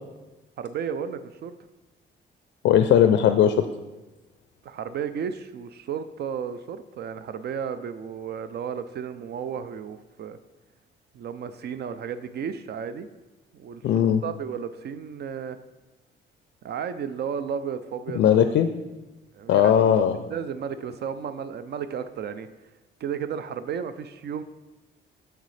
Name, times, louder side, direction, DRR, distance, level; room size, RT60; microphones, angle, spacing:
voice 1, 0.6-1.5 4.6-10.4 11.1-13.1 13.5-13.8 14.2-15.6 16.6-18.4 19.3-22.5 23.0-24.4, right 7 dB, 55° right, 11 dB, 0.4 m, -33 dB
voice 2, 2.6-3.7 13.8-14.2 18.2-18.7 19.5-20.3, left 9 dB, 65° left, 9 dB, 0.4 m, -18 dB
6.5 x 6.4 x 3.2 m, 1.1 s
cardioid pair, 90°, 20 cm